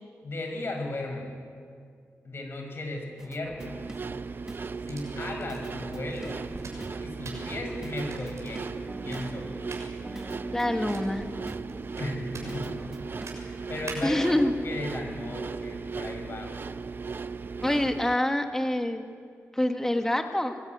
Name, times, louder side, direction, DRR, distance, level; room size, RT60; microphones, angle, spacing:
voice 1, 0.2-1.3 2.2-3.8 4.9-6.4 7.0-8.6 9.0-9.5 12.0-12.9 13.4-14.3 14.6-16.5, left 2 dB, 50° left, 3 dB, 5.8 m, -36 dB
sound 1, 3.2-5.0 5.5-7.3 7.7-13.3, right 1 dB, 10° right, 1.1 m, -44 dB
sound 2, 3.6-18.2, right 4 dB, 45° right, 0.7 m, -37 dB
sound 3, 4.7-14.3, right 3 dB, 75° right, 6.6 m, -47 dB
voice 2, 10.5-11.2 14.0-14.5 17.6-19.1 19.5-20.6, left 1 dB, 10° left, 5 dB, 1.7 m, -26 dB
25.5 x 20.0 x 9.5 m, 2.2 s
wide cardioid pair, 135°, 5 cm